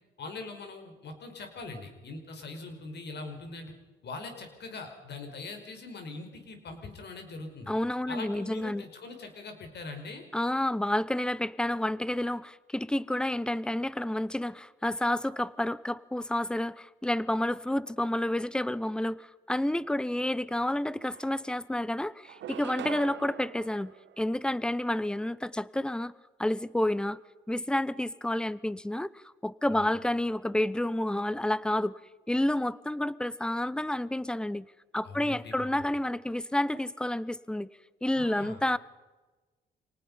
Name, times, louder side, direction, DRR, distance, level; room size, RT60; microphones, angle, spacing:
voice 1, 0.2-3.7 4.0-7.7 8.1-10.2 29.7-29.9 35.0-35.7 38.2-38.6, left 3 dB, 60° left, 5 dB, 5.3 m, -42 dB
voice 2, 7.7-8.9 10.3-26.1 26.4-27.2 27.5-31.9 32.3-34.7 34.9-37.7 38.0-38.8, left 1 dB, 5° left, 19 dB, 0.8 m, -30 dB
sound 1, 20.6-20.7 21.0-21.8 22.2-24.8, right 12 dB, 65° right, 0.7 m, -44 dB
26.5 x 19.0 x 5.6 m, 1.2 s
cardioid pair, 90°, 20 cm